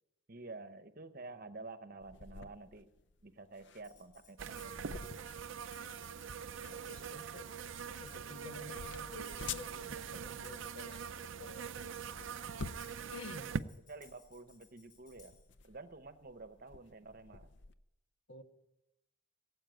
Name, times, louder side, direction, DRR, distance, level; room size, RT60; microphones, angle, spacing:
voice 1, 0.3-2.9 3.2-5.4 13.9-15.3 15.6-17.5, right 3 dB, 45° right, 11 dB, 0.9 m, -50 dB
sound 1, 2.0-17.7, left 5 dB, 55° left, 0.6 m, -51 dB
Tambourine, 3.8-15.5, left 6 dB, 40° left, 6.1 m, -64 dB
sound 2, 4.4-13.6, right 6 dB, 65° right, 0.5 m, -43 dB
voice 2, 5.8-6.4 6.6-7.6 8.0-12.4 13.1-13.5 18.3-18.4, left 3 dB, 70° left, 7 dB, 1.3 m, -51 dB
17.5 x 8.4 x 9.3 m, 0.90 s
head